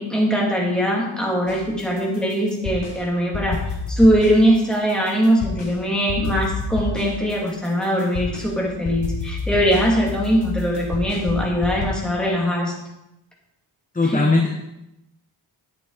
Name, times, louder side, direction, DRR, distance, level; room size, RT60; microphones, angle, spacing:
voice 1, 0.0-3.6 3.9-12.8 14.0-14.2, equal, ahead, -3 dB, 2.5 m, -21 dB
sound 1, 1.5-3.0 3.3-5.7 6.1-11.9, left 3 dB, 65° left, 2.8 m, -29 dB
voice 2, 13.9-14.5, left 3 dB, 15° left, 0 dB, 1.1 m, -18 dB
10.0 x 8.1 x 4.0 m, 0.89 s
wide cardioid pair, 125°, 45 cm